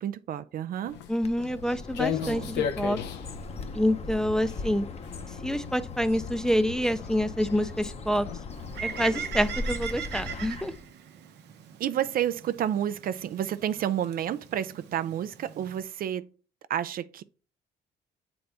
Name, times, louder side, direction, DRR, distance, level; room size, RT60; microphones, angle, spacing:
voice 1, 0.0-1.0 2.1-2.5 11.8-16.3 16.7-17.2, right 10 dB, 55° right, 0.4 m, -30 dB
Walk footsteps, 0.9-10.3, left 8 dB, 80° left, 0.7 m, -38 dB
voice 2, 1.1-3.0 3.7-4.9 5.4-8.3 8.8-10.7, equal, 5° left, 0.5 m, -27 dB
Bird, 1.2-10.9, left 3 dB, 35° left, 0.8 m, -39 dB
Bird 2, 8.5-15.8, right 8 dB, 75° right, 0.8 m, -40 dB
7.7 x 3.9 x 3.4 m
supercardioid pair, 75°, 18 cm